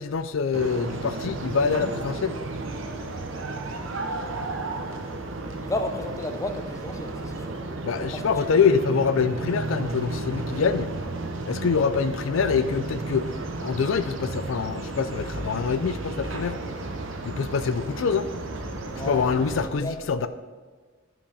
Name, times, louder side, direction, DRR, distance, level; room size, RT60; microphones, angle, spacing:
voice 1, 0.0-2.4 7.8-10.9 11.5-13.3 13.6-16.6 17.2-18.3 19.1-20.3, left 5 dB, 75° left, 11 dB, 0.4 m, -25 dB
sound 1, 0.5-19.7, right 2 dB, 70° right, 1.0 m, -33 dB
voice 2, 5.6-7.6 8.1-8.6 18.8-19.5 19.8-20.0, left 1 dB, 15° left, 6 dB, 0.7 m, -33 dB
12.0 x 5.7 x 4.9 m, 1.4 s
head